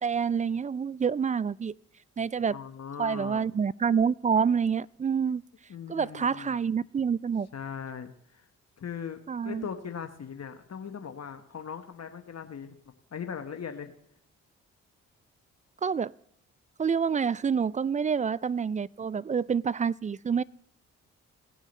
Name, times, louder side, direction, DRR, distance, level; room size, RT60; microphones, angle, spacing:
voice 1, 0.0-1.7 2.2-2.6 3.0-5.4 5.9-7.5 9.3-9.7 15.8-16.1 16.8-20.4, right 6 dB, 25° right, 0.3 m, -27 dB
voice 2, 2.5-3.4 5.7-6.6 7.5-8.4 8.8-12.8 13.1-13.9, left 7 dB, 50° left, 1.2 m, -39 dB
18.5 x 6.2 x 4.1 m
hypercardioid pair, 45°, 33 cm